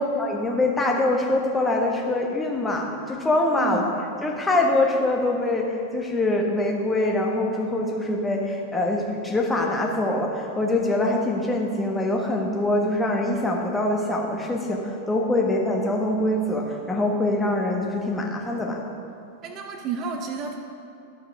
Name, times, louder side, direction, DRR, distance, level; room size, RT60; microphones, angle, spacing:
voice 1, 0.0-3.8 4.2-18.8, left 2 dB, 10° left, 0 dB, 1.2 m, -24 dB
voice 2, 19.4-20.6, right 6 dB, 35° right, 4 dB, 0.7 m, -30 dB
11.5 x 6.4 x 4.6 m, 2.6 s
figure-of-eight pair, 90°, 0 cm